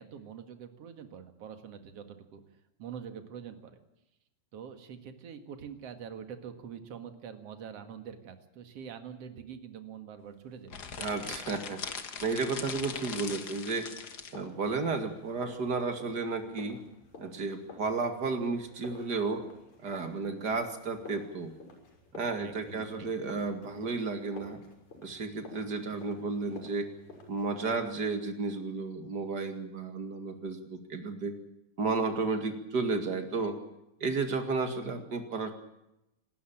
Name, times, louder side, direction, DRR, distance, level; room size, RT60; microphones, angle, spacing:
voice 1, 0.0-3.8 4.5-11.0 22.3-23.1, right 7 dB, 50° right, 8 dB, 2.5 m, -45 dB
sound 1, 10.7-14.4, left 6 dB, 80° left, 0.9 m, -40 dB
voice 2, 11.0-11.8 12.2-13.9 14.3-16.8 17.2-19.4 19.8-21.5 22.1-24.6 25.0-26.9 27.3-31.3 31.8-33.6 34.0-35.5, right 4 dB, 35° right, 6 dB, 2.2 m, -32 dB
sound 2, 11.1-27.8, left 3 dB, 50° left, 7.6 m, -52 dB
27.5 x 12.5 x 8.8 m, 0.87 s
omnidirectional pair, 4.1 m